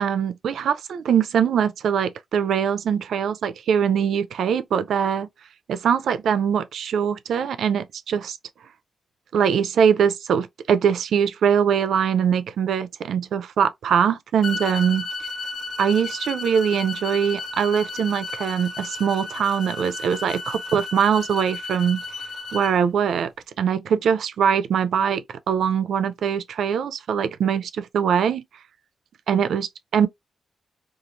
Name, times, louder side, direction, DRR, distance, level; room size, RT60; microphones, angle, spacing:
voice 1, 0.0-5.3 5.7-8.4 9.3-15.0 15.8-22.0 22.5-23.3 23.6-28.4 29.3-30.1, right 7 dB, 80° right, 0.3 m, -22 dB
sound 1, 14.4-22.7, left 3 dB, 60° left, 0.5 m, -33 dB
2.9 x 2.3 x 2.6 m
wide cardioid pair, 160°, 0 cm